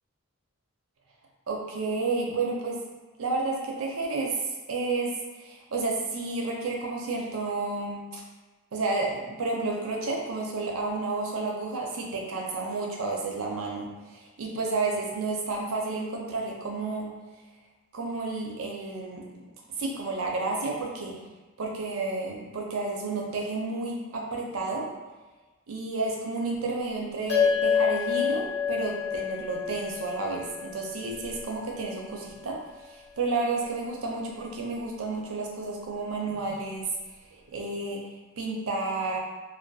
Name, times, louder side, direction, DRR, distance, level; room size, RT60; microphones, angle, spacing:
voice 1, 1.5-2.8 3.2-5.1 5.4-8.2 8.7-17.1 17.9-19.2 19.8-21.3 21.6-24.9 25.7-32.6 32.8-36.9 37.3-38.0 38.4-39.2, right 3 dB, 75° right, -1 dB, 0.5 m, -31 dB
sound 1, 27.3-32.0, left 7 dB, 50° left, 0.7 m, -28 dB
2.5 x 2.1 x 2.3 m, 1.2 s
head